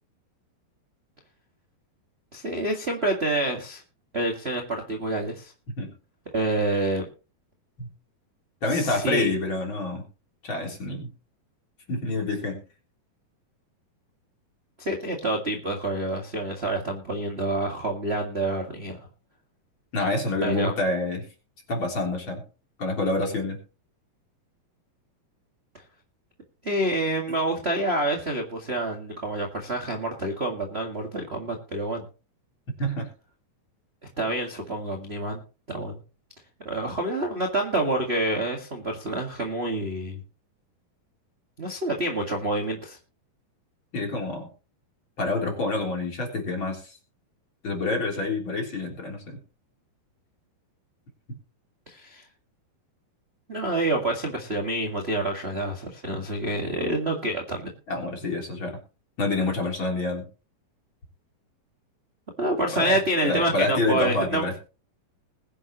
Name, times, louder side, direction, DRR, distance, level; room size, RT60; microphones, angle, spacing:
voice 1, 2.3-3.8 4.1-5.5 6.3-7.0 8.7-9.3 14.8-19.1 20.4-20.7 26.6-32.0 34.2-35.4 35.7-36.0 36.6-40.2 41.6-43.0 51.9-52.2 53.5-57.7 62.4-64.4, right 1 dB, 30° right, 0 dB, 1.1 m, -27 dB
voice 2, 8.6-10.0 10.4-11.1 11.9-12.6 19.9-21.3 21.7-22.4 22.8-23.6 27.3-27.4 32.8-33.1 43.9-44.5 45.2-47.0 47.6-49.4 51.3-51.4 57.9-58.8 59.2-60.2 62.7-64.6, left 2 dB, 35° left, 1 dB, 4.0 m, -27 dB
21.0 x 10.0 x 3.1 m, 0.33 s
omnidirectional pair, 4.4 m